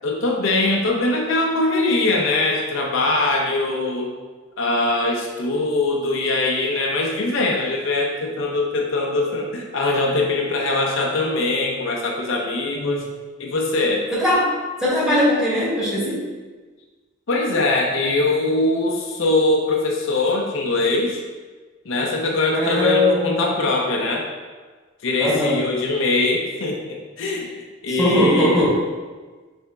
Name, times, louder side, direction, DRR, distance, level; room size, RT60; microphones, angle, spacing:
voice 1, 0.0-4.1 4.6-13.0 13.4-14.1 17.3-21.2 21.9-24.3 25.0-27.5 27.8-28.6, left 2 dB, 70° left, 0 dB, 0.6 m, -22 dB
voice 2, 12.7-13.0 14.1-14.5 14.8-16.2 22.5-23.5 25.2-25.6 27.9-28.8, left 1 dB, 5° right, -8 dB, 1.5 m, -20 dB
6.5 x 3.4 x 2.3 m, 1.4 s
head